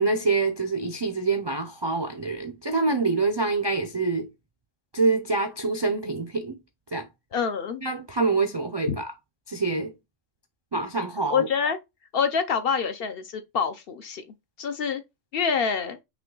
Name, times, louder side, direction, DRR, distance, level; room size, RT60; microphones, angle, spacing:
voice 1, 0.0-4.3 4.9-6.5 6.9-7.0 7.8-9.1 9.5-9.9 10.7-11.5, right 3 dB, 40° right, 0.3 m, -26 dB
voice 2, 7.3-7.8 8.9-9.0 11.3-11.8 12.1-15.0 15.3-16.0, left 6 dB, 60° left, 0.7 m, -26 dB
5.7 x 2.3 x 3.7 m
omnidirectional pair, 1.3 m